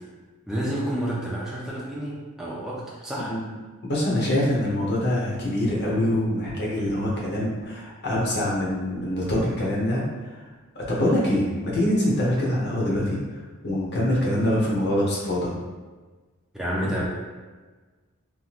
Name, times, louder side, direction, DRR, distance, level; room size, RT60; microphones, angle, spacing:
voice 1, 0.5-3.4 16.5-17.0, equal, ahead, -6 dB, 0.4 m, -29 dB
voice 2, 3.9-10.4 10.7-15.5, left 1 dB, 50° left, -5 dB, 1.0 m, -24 dB
3.6 x 2.9 x 2.4 m, 1.3 s
head